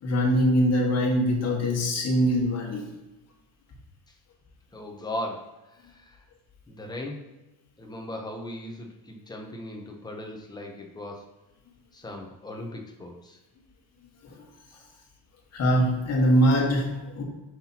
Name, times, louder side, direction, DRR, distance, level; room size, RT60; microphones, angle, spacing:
voice 1, 0.0-2.8 15.5-17.2, equal, 40° left, -1 dB, 1.7 m, -22 dB
voice 2, 4.7-6.2 6.7-7.2 7.8-11.3 11.9-13.4 14.7-14.9, left 1 dB, 10° left, 1 dB, 0.8 m, -38 dB
7.7 x 6.0 x 2.9 m, 1.0 s
cardioid pair, 175°, 39 cm